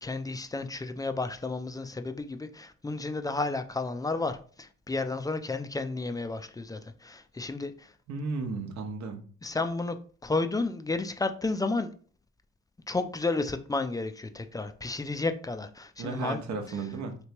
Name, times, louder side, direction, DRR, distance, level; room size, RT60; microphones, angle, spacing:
voice 1, 0.0-7.9 9.4-10.0 10.2-11.9 12.9-16.4, left 3 dB, 15° left, 0.3 m, -32 dB
voice 2, 8.1-9.2 16.0-17.2, right 4 dB, 65° right, 0.9 m, -34 dB
3.3 x 3.0 x 2.9 m
cardioid pair, 90°, 30 cm